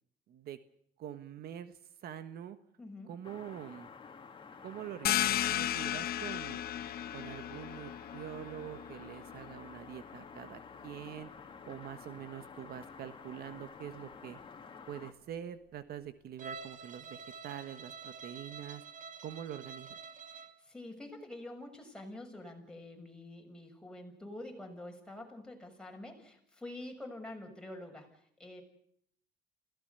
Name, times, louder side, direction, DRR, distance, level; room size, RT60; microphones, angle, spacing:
voice 1, 0.3-0.6 1.0-2.6 3.1-3.9 4.6-6.6 7.1-11.3 11.6-14.4 14.9-18.8 19.2-20.0, right 10 dB, 65° right, 11 dB, 1.4 m, -45 dB
voice 2, 2.8-3.2 20.3-28.6, left 1 dB, 5° left, 2 dB, 6.5 m, -47 dB
sound 1, 3.2-15.1, left 5 dB, 30° left, 2.4 m, -51 dB
sound 2, 5.0-10.4, left 12 dB, 65° left, 1.2 m, -35 dB
Bowed string instrument, 16.4-20.6, right 5 dB, 50° right, 1.8 m, -48 dB
27.5 x 17.0 x 6.9 m, 0.67 s
cardioid pair, 110°, 17 cm